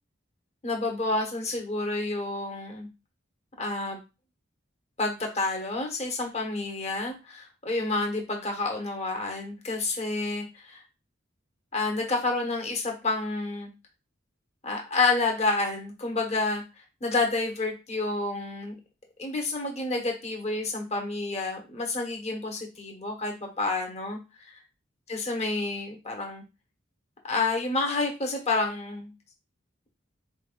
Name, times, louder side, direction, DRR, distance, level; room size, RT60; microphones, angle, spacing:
voice 1, 0.6-2.9 3.6-4.0 5.0-10.8 11.7-13.7 14.6-16.6 17.0-18.8 19.2-24.2 25.1-26.4 27.2-29.1, left 3 dB, 35° left, 1 dB, 1.2 m, -29 dB
4.3 x 3.4 x 2.4 m, 0.28 s
head